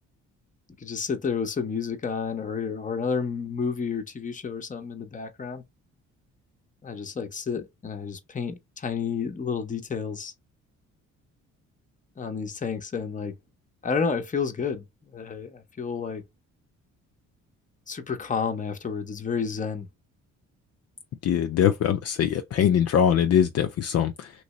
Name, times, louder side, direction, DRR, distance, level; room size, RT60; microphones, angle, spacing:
voice 1, 0.8-5.6 6.8-10.3 12.2-13.3 13.8-16.2 17.9-19.9, left 5 dB, 25° left, 0.7 m, -30 dB
voice 2, 21.2-24.3, left 9 dB, 55° left, 0.5 m, -22 dB
3.1 x 2.7 x 3.0 m
cardioid pair, 90°, 30 cm